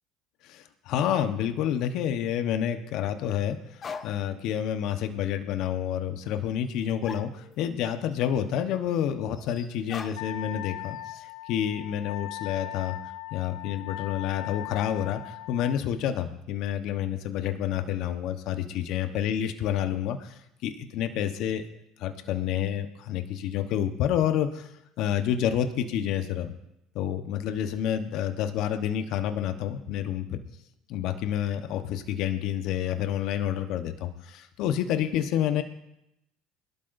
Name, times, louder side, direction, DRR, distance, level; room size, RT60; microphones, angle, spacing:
voice 1, 0.4-21.6 22.0-24.7 25.0-26.5 26.9-30.4 30.9-35.6, left 10 dB, 65° left, 7 dB, 1.1 m, -29 dB
sound 1, 3.4-3.5 3.8-4.5 4.8-4.9 6.7-6.8 7.0-7.8 8.1-8.2 9.3-10.5 10.8-11.3, left 5 dB, 40° left, 1.2 m, -42 dB
Wind instrument woodwind instrument, 10.2-15.8, left 17 dB, 85° left, 0.4 m, -39 dB
22.0 x 12.0 x 2.7 m, 0.80 s
hypercardioid pair, 75°, 0 cm